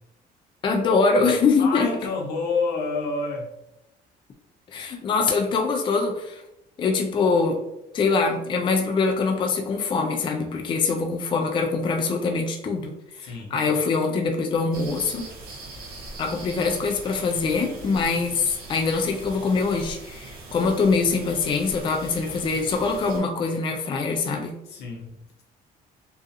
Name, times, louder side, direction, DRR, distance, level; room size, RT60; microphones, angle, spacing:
voice 1, 0.6-1.9 4.7-6.4 6.8-7.6 7.9-15.2 16.2-24.5, left 4 dB, 30° left, 3 dB, 0.3 m, -23 dB
voice 2, 1.6-3.5 13.2-13.7 24.7-25.2, left 4 dB, 85° left, 1 dB, 0.6 m, -28 dB
sound 1, 14.7-23.2, right 2 dB, 60° right, 0.8 m, -41 dB
2.4 x 2.4 x 2.5 m, 0.87 s
cardioid pair, 110°, 17 cm